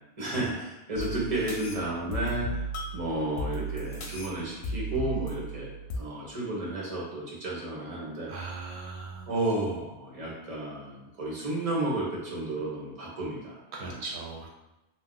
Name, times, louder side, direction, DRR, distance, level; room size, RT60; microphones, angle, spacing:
voice 1, 0.2-8.3 9.3-14.0, right 2 dB, 35° right, -4 dB, 0.9 m, -32 dB
sound 1, 1.0-6.0, right 1 dB, 70° left, 0.8 m, -35 dB
voice 2, 8.3-9.3 13.7-14.5, right 3 dB, 80° right, -2 dB, 0.8 m, -38 dB
2.6 x 2.1 x 3.7 m, 0.98 s
omnidirectional pair, 1.1 m